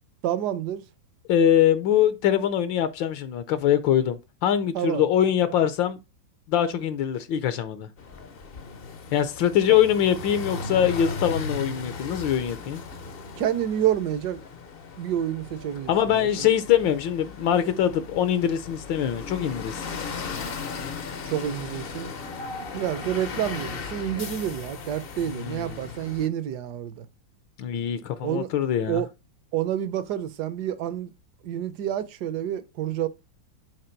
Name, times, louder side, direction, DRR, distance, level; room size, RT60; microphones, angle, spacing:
voice 1, 0.2-0.8 4.7-5.0 9.7-9.8 13.4-14.4 15.0-16.5 21.3-22.1 22.7-27.1 28.2-28.5 28.9-29.1 29.5-31.1 31.4-33.1, right 10 dB, 70° right, 1.1 m, -28 dB
voice 2, 1.3-6.0 6.5-7.9 9.1-12.8 15.9-19.9 25.2-25.8 27.6-29.0, left 10 dB, 80° left, 1.4 m, -23 dB
sound 1, 8.0-26.3, left 4 dB, 60° left, 0.6 m, -37 dB
6.7 x 4.0 x 4.4 m
omnidirectional pair, 2.1 m